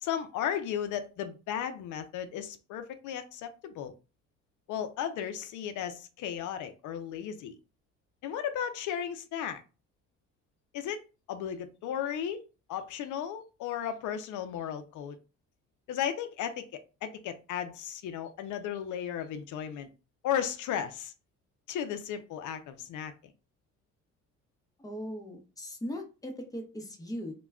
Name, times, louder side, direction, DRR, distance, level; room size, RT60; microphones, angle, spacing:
voice 1, 0.0-3.9 4.7-7.6 8.2-9.6 10.7-11.0 11.3-15.2 15.9-19.9 20.2-21.1 21.7-23.3, left 9 dB, 80° left, 0.5 m, -35 dB
voice 2, 24.8-27.3, equal, 10° left, 0.7 m, -39 dB
2.2 x 2.1 x 3.5 m
cardioid pair, 90°, 30 cm